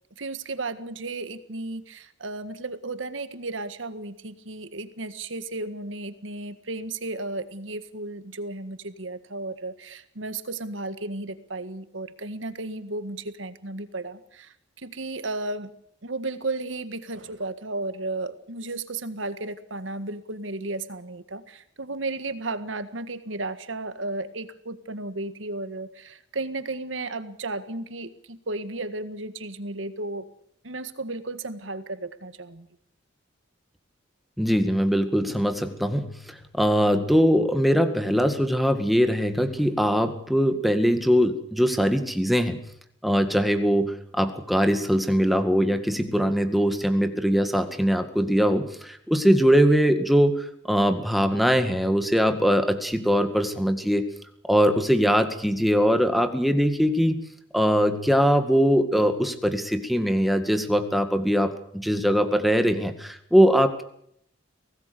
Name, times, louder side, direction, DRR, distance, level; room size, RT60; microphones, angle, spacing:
voice 1, 0.2-15.7 16.0-30.2 30.6-32.7, right 2 dB, 85° right, 12 dB, 1.7 m, -34 dB
voice 2, 34.4-42.6 43.0-54.1 54.4-57.3 57.5-63.8, equal, ahead, 7 dB, 1.9 m, -22 dB
24.0 x 18.0 x 6.8 m, 0.69 s
head